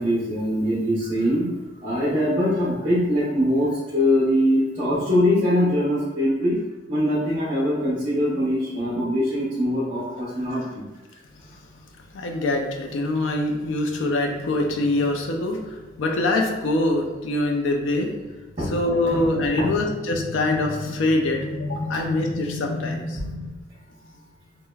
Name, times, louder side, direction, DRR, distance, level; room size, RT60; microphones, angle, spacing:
voice 1, 0.0-6.6 6.9-10.8 18.6-18.7 19.1-19.2 19.6-19.7 21.9-22.0, equal, 30° right, -9 dB, 0.6 m, -22 dB
voice 2, 12.1-18.1 18.7-23.5, left 2 dB, 80° left, 2 dB, 0.4 m, -24 dB
3.2 x 2.1 x 2.2 m, 1.2 s
head